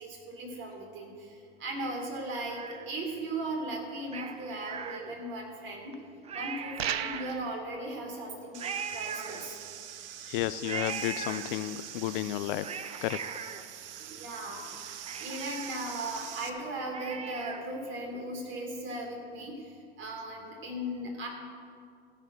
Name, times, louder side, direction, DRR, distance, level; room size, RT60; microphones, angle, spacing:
voice 1, 0.0-6.0 6.3-8.6 8.9-9.6 14.1-14.6 15.2-21.3, right 1 dB, 40° right, 0 dB, 3.8 m, -37 dB
Cat, 1.7-3.2 4.1-5.5 5.9-6.0 6.2-7.7 8.6-9.9 10.6-11.9 12.4-14.4 14.7-14.8 15.1-17.8 18.2-18.3, right 6 dB, 20° right, 0.7 m, -40 dB
sound 1, 6.8-7.5, right 11 dB, 85° right, 0.6 m, -33 dB
sound 2, 8.5-16.5, right 10 dB, 65° right, 1.0 m, -44 dB
voice 2, 10.3-12.7 13.0-13.2, left 15 dB, 60° left, 15 dB, 0.5 m, -32 dB
15.5 x 5.8 x 7.7 m, 2.2 s
hypercardioid pair, 100°, 30 cm